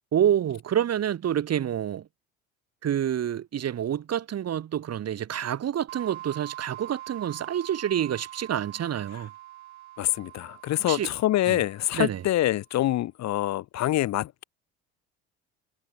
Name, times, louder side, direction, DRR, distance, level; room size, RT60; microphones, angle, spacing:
voice 1, 0.1-2.1 2.8-9.3 10.9-11.1 11.5-11.6 11.9-12.2, right 10 dB, 50° right, 4.4 m, -27 dB
sound 1, 5.9-12.4, right 15 dB, 90° right, 7.0 m, -44 dB
voice 2, 10.0-14.4, left 14 dB, 55° left, 1.2 m, -26 dB
hypercardioid pair, 65°, 32 cm